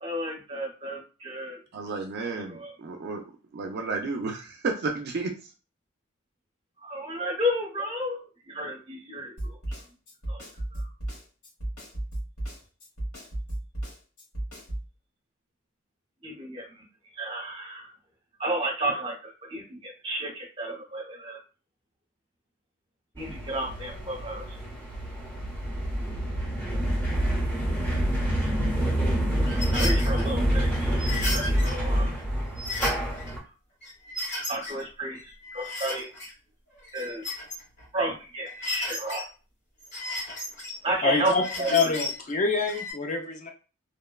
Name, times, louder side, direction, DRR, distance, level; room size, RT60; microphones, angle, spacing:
voice 1, 0.0-1.6 2.3-2.7 6.8-9.6 10.3-10.4 10.7-10.9 16.2-16.8 17.2-17.9 18.4-21.4 23.1-24.6 29.7-32.1 34.5-36.1 36.9-37.4 37.9-39.3 40.8-41.9, right 1 dB, 25° right, -1 dB, 0.8 m, -32 dB
voice 2, 1.7-3.2 3.5-5.3, right 3 dB, 50° right, 4 dB, 0.4 m, -32 dB
Snare drum, 9.4-14.9, right 1 dB, 80° left, 1.2 m, -34 dB
sound 1, 23.2-33.4, equal, 10° left, 0.9 m, -27 dB
sound 2, 29.4-30.3 31.0-31.8 32.2-32.3 32.6-33.3 33.8-34.8 35.2-36.3 36.8-37.9 38.5-39.2 39.8-40.8 41.2-42.2 42.6-42.9, left 2 dB, 50° left, 1.3 m, -34 dB
voice 3, 41.0-41.4 41.7-43.5, left 4 dB, 35° left, 3 dB, 0.4 m, -26 dB
2.9 x 2.1 x 2.2 m, 0.34 s
head